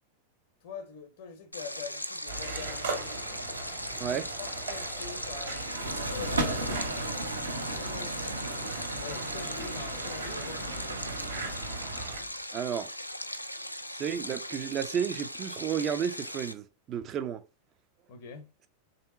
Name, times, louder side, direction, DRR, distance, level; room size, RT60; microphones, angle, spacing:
voice 1, 0.6-3.3 3.8-6.8 7.4-8.5 9.0-11.0 18.1-18.5, left 5 dB, 55° left, 0.7 m, -44 dB
Stream, 1.5-16.5, equal, 90° left, 0.3 m, -39 dB
sound 1, 2.3-12.2, right 3 dB, 60° right, 1.6 m, -39 dB
sound 2, 5.3-12.3, right 2 dB, 80° right, 0.9 m, -36 dB
voice 2, 12.5-12.9 13.9-17.4, right 8 dB, 30° right, 0.4 m, -32 dB
3.5 x 2.7 x 4.0 m
figure-of-eight pair, 90°, 0 cm